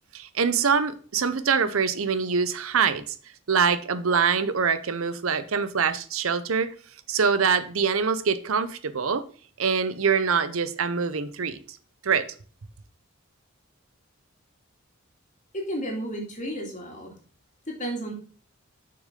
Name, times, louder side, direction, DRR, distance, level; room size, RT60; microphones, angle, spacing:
voice 1, 0.1-3.1 3.5-6.7 7.1-9.2 9.6-11.8 12.0-12.3, right 6 dB, 75° right, 0.7 m, -24 dB
voice 2, 15.5-17.1 17.7-18.1, right 1 dB, 35° left, 2.4 m, -32 dB
6.8 x 6.4 x 3.7 m
head